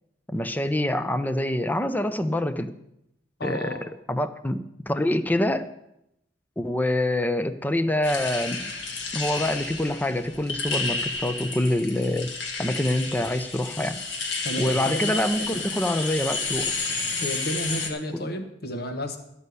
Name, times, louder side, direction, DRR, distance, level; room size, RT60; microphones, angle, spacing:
voice 1, 0.3-2.7 3.4-5.7 6.6-8.6 9.1-12.3 12.6-14.0 14.6-16.6 18.1-18.2, left 1 dB, 10° left, 10 dB, 0.6 m, -26 dB
voice 2, 3.4-3.8 14.4-15.6 17.2-19.2, left 1 dB, 60° left, 6 dB, 1.4 m, -32 dB
sound 1, 8.0-17.9, left 3 dB, 75° left, 1.8 m, -31 dB
13.0 x 5.5 x 8.1 m, 0.82 s
head